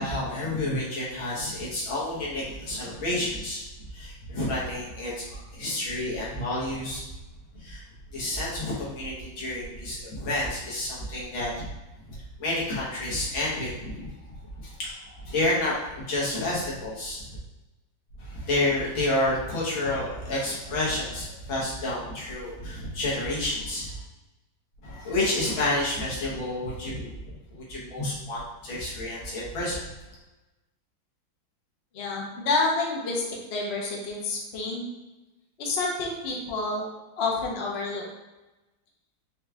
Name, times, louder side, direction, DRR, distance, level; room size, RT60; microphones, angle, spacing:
voice 1, 0.0-3.6 3.9-7.0 7.6-7.8 8.1-11.7 12.1-14.1 14.6-17.4 18.2-23.9 24.8-29.8, left 1 dB, 80° left, -6 dB, 2.0 m, -30 dB
voice 2, 31.9-33.2 33.5-34.9 35.6-36.9 37.2-38.0, left 3 dB, 50° left, -2 dB, 0.8 m, -28 dB
5.3 x 2.4 x 3.3 m, 1.1 s
omnidirectional pair, 2.2 m